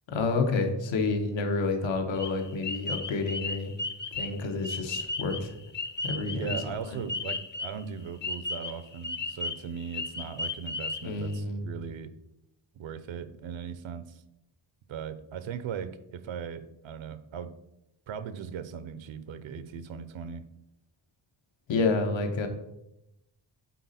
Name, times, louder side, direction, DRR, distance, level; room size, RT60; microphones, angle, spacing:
voice 1, 0.1-3.7 4.1-5.5 6.0-6.6 6.9-7.0 11.0-11.7 21.7-22.5, left 3 dB, 90° left, 5 dB, 1.1 m, -29 dB
sound 1, 2.2-7.8 8.2-11.4, left 3 dB, 25° left, 0.4 m, -35 dB
voice 2, 6.3-12.1 12.7-14.2 14.9-17.5 18.1-20.5, right 7 dB, 85° right, 13 dB, 0.7 m, -38 dB
8.3 x 4.2 x 4.2 m, 0.86 s
wide cardioid pair, 145°, 45 cm